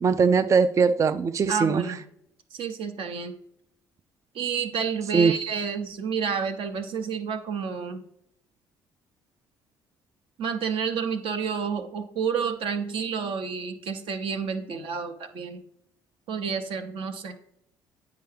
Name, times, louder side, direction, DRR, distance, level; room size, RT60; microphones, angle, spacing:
voice 1, 0.0-1.8 5.1-5.3, right 5 dB, 30° right, 10 dB, 0.4 m, -21 dB
voice 2, 1.5-2.0 2.5-3.3 4.3-8.0 10.4-15.6 16.3-17.3, right 6 dB, 65° right, 6 dB, 0.8 m, -30 dB
9.0 x 4.7 x 3.4 m, 0.75 s
hypercardioid pair, 60°, 10 cm